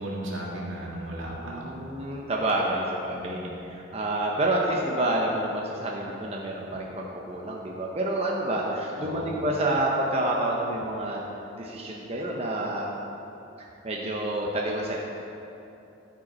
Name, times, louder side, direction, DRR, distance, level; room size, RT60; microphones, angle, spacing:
voice 1, 0.0-1.8 3.1-3.3 9.0-9.3, right 1 dB, 80° right, -3 dB, 1.8 m, -35 dB
voice 2, 1.4-11.3 11.6-12.9 13.8-15.0, right 1 dB, 30° right, -2 dB, 0.7 m, -28 dB
14.0 x 5.2 x 4.3 m, 2.9 s
head